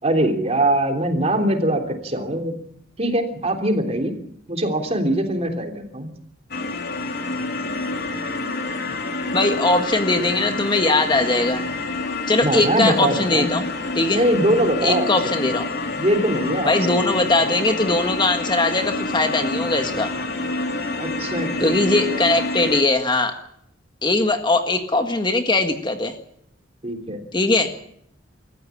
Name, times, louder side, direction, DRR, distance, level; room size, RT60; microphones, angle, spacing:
voice 1, 0.0-2.6 3.0-4.2 4.5-6.1 12.4-13.5 14.1-15.5 16.0-17.0 21.0-22.2 26.8-27.2, right 1 dB, 35° right, 4 dB, 3.3 m, -22 dB
sound 1, 6.5-22.8, left 2 dB, 60° left, 3.3 m, -27 dB
voice 2, 9.3-11.6 12.3-13.7 13.9-14.2 14.8-15.7 16.6-20.1 21.6-23.4 24.0-26.2 27.3-27.7, left 2 dB, 25° left, 6 dB, 1.7 m, -20 dB
26.0 x 14.5 x 8.5 m, 0.70 s
head